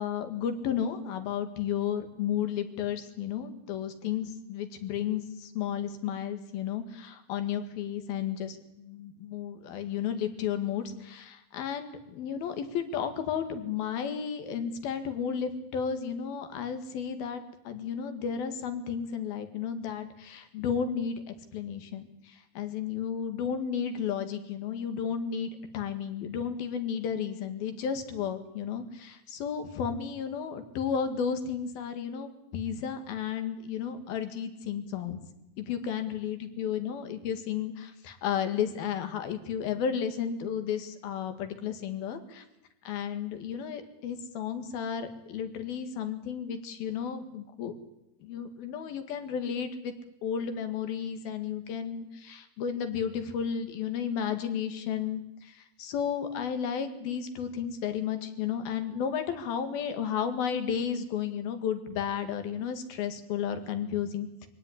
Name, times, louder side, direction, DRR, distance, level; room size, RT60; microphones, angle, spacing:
voice 1, 0.0-35.2 35.6-42.5 42.9-47.7 48.2-49.9 50.2-64.5, left 8 dB, 70° left, 8 dB, 3.7 m, -33 dB
24.5 x 17.0 x 10.0 m, 0.87 s
omnidirectional pair, 4.6 m